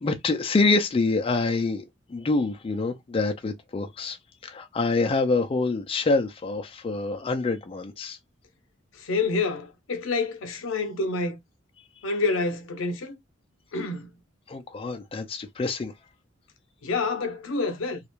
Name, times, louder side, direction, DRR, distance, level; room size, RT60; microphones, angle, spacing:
voice 1, 0.0-4.2 4.4-8.2 14.5-15.9, left 3 dB, 30° left, 0.4 m, -26 dB
voice 2, 9.0-11.4 12.0-13.2 13.7-14.1 16.8-18.0, left 3 dB, 80° left, 0.6 m, -28 dB
2.4 x 2.1 x 2.9 m
head